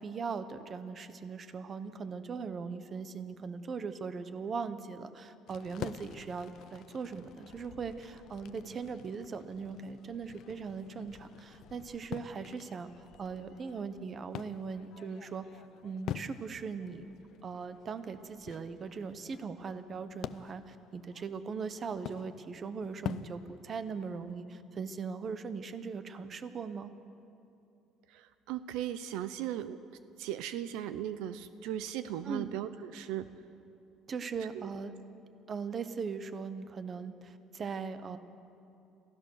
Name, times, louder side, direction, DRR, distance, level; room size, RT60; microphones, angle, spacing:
voice 1, 0.0-17.0 17.4-26.9 32.2-32.5 34.1-34.9 35.5-38.2, right 5 dB, 35° right, 11 dB, 1.1 m, -39 dB
sound 1, 5.5-24.4, left 10 dB, 60° left, 0.6 m, -47 dB
voice 2, 28.1-29.8 30.2-33.3 34.5-34.7, right 11 dB, 80° right, 12 dB, 0.7 m, -37 dB
27.5 x 15.5 x 6.6 m, 2.7 s
cardioid pair, 125°, 0 cm